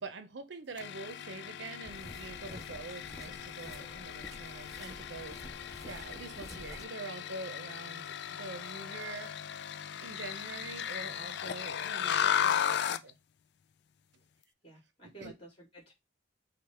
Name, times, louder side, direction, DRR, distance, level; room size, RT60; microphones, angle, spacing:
voice 1, 0.0-5.4 5.8-9.3 10.0-13.1 15.0-15.3, right 3 dB, 65° right, 0.7 m, -45 dB
sound 1, 0.8-13.1, left 9 dB, 60° left, 0.3 m, -36 dB
sound 2, 1.8-6.9, equal, ahead, 0.5 m, -50 dB
voice 2, 14.6-15.9, right 1 dB, 30° left, 2.2 m, -52 dB
4.7 x 2.3 x 4.3 m
head